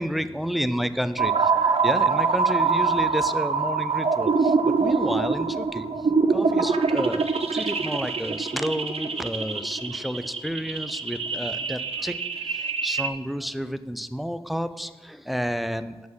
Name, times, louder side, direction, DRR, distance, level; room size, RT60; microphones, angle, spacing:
voice 1, 0.0-5.9 6.3-12.2 12.4-16.0, equal, ahead, 12 dB, 0.4 m, -30 dB
sound 1, 1.2-13.1, right 4 dB, 75° right, 0.6 m, -24 dB
7.8 x 6.4 x 5.6 m, 1.3 s
wide cardioid pair, 80°, 10 cm